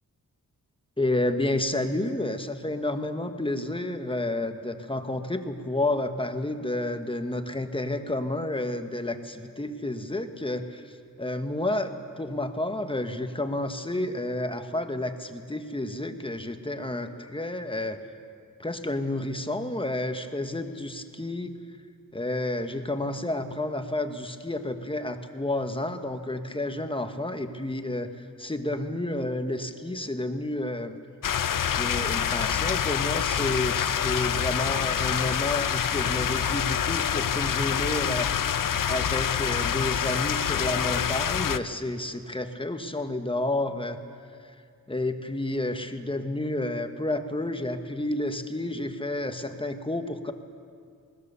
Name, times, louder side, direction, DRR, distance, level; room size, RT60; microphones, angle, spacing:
voice 1, 1.0-18.0 18.6-21.6 22.1-31.0 31.7-38.3 38.9-44.0 44.4-44.5 44.9-50.3, left 1 dB, 15° left, 7 dB, 1.2 m, -30 dB
sound 1, 31.2-41.6, left 8 dB, 65° left, 0.7 m, -26 dB
20.5 x 19.0 x 6.9 m, 2.2 s
wide cardioid pair, 105°, 35 cm